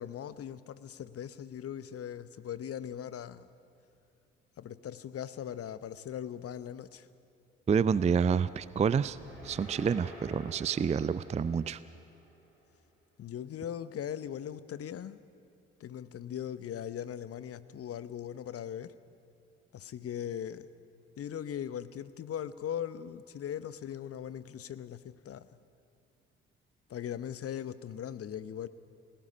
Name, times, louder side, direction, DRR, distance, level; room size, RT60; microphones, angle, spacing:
voice 1, 0.0-3.5 4.6-7.1 13.2-15.2 15.8-18.9 19.7-20.6 21.2-25.5 26.9-28.7, left 9 dB, 45° left, 15 dB, 0.9 m, -39 dB
voice 2, 7.7-9.2 9.4-11.8, right 6 dB, 20° right, 17 dB, 0.5 m, -28 dB
sound 1, 8.3-12.6, equal, 90° left, 6.1 m, -50 dB
29.5 x 18.5 x 5.3 m, 2.5 s
figure-of-eight pair, 40°, 33 cm